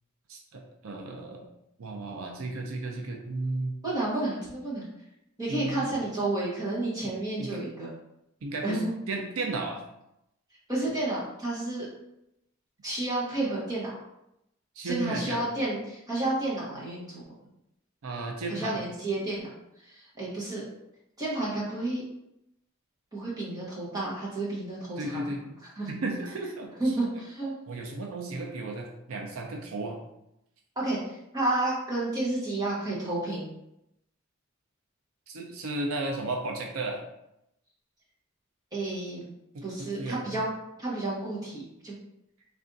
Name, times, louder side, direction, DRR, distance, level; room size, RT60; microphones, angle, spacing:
voice 1, 0.3-1.5 1.8-3.7 5.5-5.9 7.4-7.5 8.4-9.8 14.8-15.4 18.0-18.8 25.0-25.6 25.9-26.7 27.7-30.0 35.3-37.0 39.5-40.2, right 2 dB, 80° right, 2 dB, 0.5 m, -34 dB
voice 2, 3.8-4.9 5.4-7.9 8.6-8.9 10.7-11.9 12.8-13.9 14.8-17.2 18.5-19.5 19.8-20.6 21.2-22.0 23.1-25.3 25.8-25.9 26.8-27.5 30.8-33.5 38.7-39.2 39.6-40.5 40.8-41.9, right 2 dB, 15° right, -7 dB, 1.0 m, -31 dB
3.4 x 2.5 x 3.8 m, 0.84 s
head